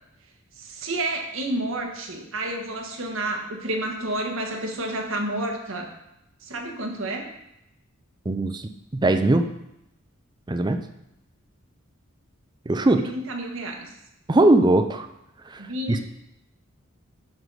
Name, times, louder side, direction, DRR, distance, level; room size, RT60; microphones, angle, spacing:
voice 1, 0.6-5.9 6.4-7.3 13.0-13.9 15.6-16.0, right 1 dB, 70° right, 1 dB, 1.4 m, -30 dB
voice 2, 8.3-8.7 9.0-9.5 10.5-10.8 12.7-13.1 14.3-15.1 15.5-15.6 15.9-16.0, right 2 dB, 20° right, 7 dB, 0.5 m, -20 dB
11.5 x 4.0 x 4.7 m, 0.84 s
head